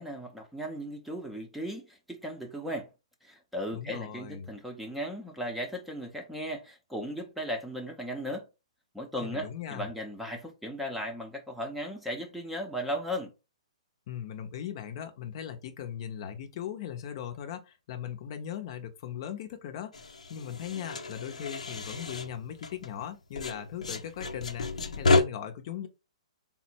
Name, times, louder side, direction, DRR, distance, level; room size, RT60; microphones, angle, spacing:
voice 1, 0.0-2.9 3.2-8.5 8.9-13.3, equal, ahead, 0.6 m, -36 dB
voice 2, 3.7-4.5 9.2-9.9 14.1-20.0 20.3-24.7 24.9-25.9, left 9 dB, 45° left, 0.7 m, -39 dB
sound 1, 19.9-23.1 23.4-25.2, left 3 dB, 85° left, 0.7 m, -30 dB
3.6 x 2.1 x 4.4 m
hypercardioid pair, 140°, 4 cm